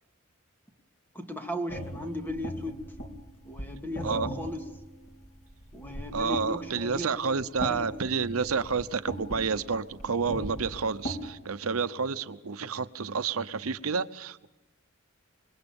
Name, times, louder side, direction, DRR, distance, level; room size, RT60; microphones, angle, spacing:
voice 1, 1.1-2.8 3.4-4.6 5.7-7.9, left 1 dB, 10° left, 4 dB, 2.1 m, -37 dB
sound 1, 1.7-11.3, right 1 dB, 80° left, 3.8 m, -39 dB
voice 2, 6.1-14.5, right 5 dB, 80° right, 12 dB, 0.8 m, -30 dB
26.5 x 21.0 x 7.1 m, 1.0 s
head